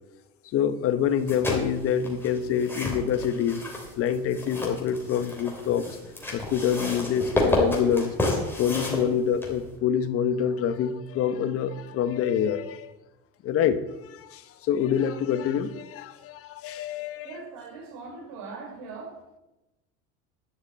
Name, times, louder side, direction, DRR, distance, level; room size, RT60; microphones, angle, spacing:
voice 1, 0.5-3.6 4.0-5.9 6.3-8.1 8.6-12.9 13.4-17.3, left 8 dB, 45° left, 1.1 m, -26 dB
sound 1, 1.1-9.7, left 1 dB, 5° left, 3.0 m, -30 dB
voice 2, 17.2-19.2, right 4 dB, 70° right, 4.0 m, -40 dB
11.0 x 6.7 x 8.4 m
cardioid pair, 145°, 31 cm